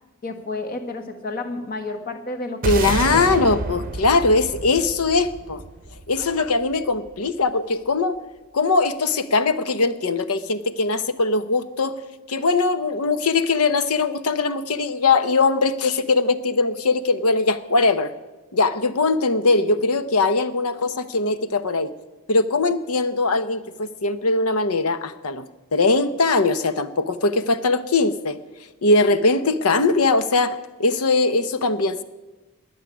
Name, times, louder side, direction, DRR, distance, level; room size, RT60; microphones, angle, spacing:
voice 1, 0.2-3.2, left 2 dB, 40° left, 7 dB, 1.5 m, -31 dB
voice 2, 2.6-5.6 6.1-8.2 8.5-12.0 12.3-18.1 18.5-21.9 22.3-25.5 25.7-28.4 28.8-32.0, left 3 dB, 85° left, 12 dB, 0.9 m, -21 dB
sound 1, 2.6-7.1, right 3 dB, 40° right, 0.7 m, -29 dB
20.0 x 6.6 x 9.9 m, 1.2 s
head